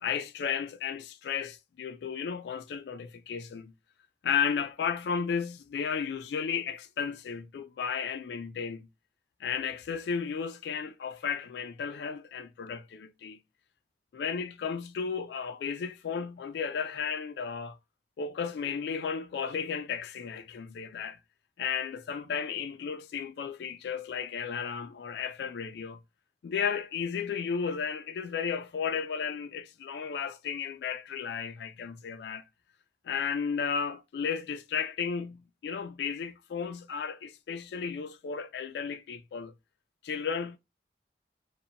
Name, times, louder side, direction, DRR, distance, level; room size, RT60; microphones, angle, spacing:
voice 1, 0.0-3.7 4.2-8.9 9.4-13.4 14.1-17.8 18.2-21.2 21.6-26.0 26.4-32.4 33.1-39.5 40.0-40.6, left 6 dB, 75° left, 0.3 m, -34 dB
2.7 x 2.1 x 2.5 m
head